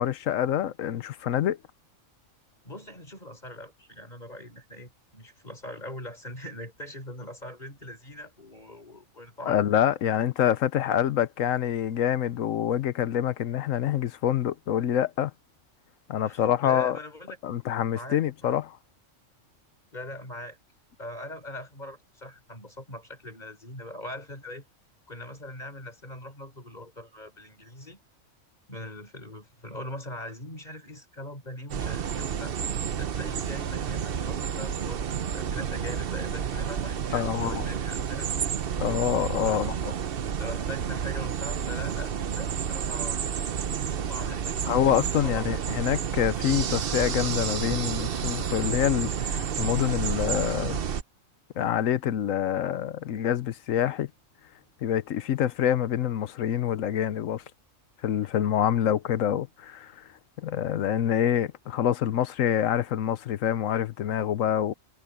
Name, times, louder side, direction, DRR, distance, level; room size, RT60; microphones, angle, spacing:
voice 1, 0.0-1.6 9.5-15.3 16.1-17.0 17.4-18.8 37.1-37.7 38.8-39.9 44.7-50.8 51.6-54.1 54.8-57.4 58.0-60.1 60.4-64.7, left 10 dB, 85° left, 1.2 m, -26 dB
voice 2, 2.6-9.6 16.2-17.4 17.9-18.6 19.9-20.6 21.0-24.7 25.1-28.0 28.7-32.6 33.0-35.1 35.3-38.8 39.4-39.6 40.4-43.2 44.0-45.5, left 1 dB, 35° left, 5.9 m, -41 dB
sound 1, 31.7-51.0, right 8 dB, 50° right, 0.9 m, -30 dB
omnidirectional pair, 1.3 m